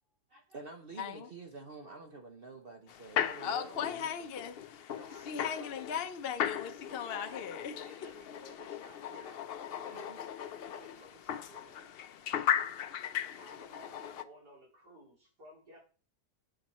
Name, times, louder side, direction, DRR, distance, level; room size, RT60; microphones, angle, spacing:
voice 1, 0.3-4.3 8.1-8.2 9.8-10.6 11.6-11.7, right 3 dB, 45° right, 0.9 m, -49 dB
voice 2, 1.0-1.3 3.4-4.9 5.2-7.8, left 8 dB, 50° left, 0.8 m, -38 dB
sound 1, 2.9-14.2, left 9 dB, 85° left, 0.5 m, -38 dB
voice 3, 4.5-5.8 6.8-9.4 9.7-10.2 10.6-12.0 13.4-15.8, equal, 85° right, 4.4 m, -56 dB
8.9 x 7.3 x 4.3 m
omnidirectional pair, 1.7 m